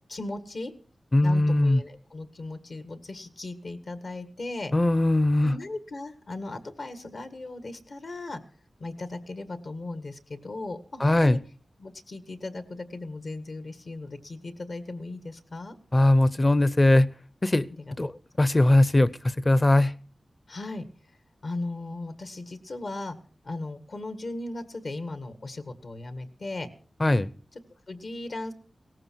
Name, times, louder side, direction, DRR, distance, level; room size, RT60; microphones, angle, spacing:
voice 1, 0.1-0.7 1.2-4.7 5.4-8.4 8.8-11.4 11.8-15.8 17.7-17.9 20.5-20.9 21.4-23.2 23.4-26.7 27.5-27.6 27.9-28.5, left 2 dB, 65° left, 1.8 m, -37 dB
voice 2, 1.1-1.8 4.7-5.5 11.0-11.4 15.9-17.1 17.4-17.7 18.0-18.1 18.4-19.1 19.4-19.9 27.0-27.3, left 1 dB, 30° left, 0.7 m, -20 dB
17.5 x 14.5 x 4.7 m
wide cardioid pair, 80°, 0 cm